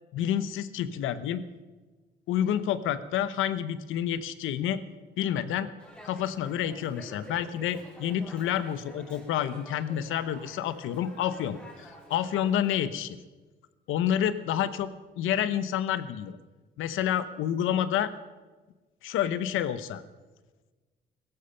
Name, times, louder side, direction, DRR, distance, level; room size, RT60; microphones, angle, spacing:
voice 1, 0.1-1.4 2.3-4.8 5.2-5.7 6.0-13.2 13.9-14.9 15.2-16.4 16.8-18.1 19.0-20.0, left 10 dB, 90° left, 13 dB, 0.9 m, -29 dB
Dog, 5.8-12.7, equal, 5° left, 4.5 m, -49 dB
17.0 x 13.5 x 5.7 m, 1.3 s
cardioid pair, 90°, 20 cm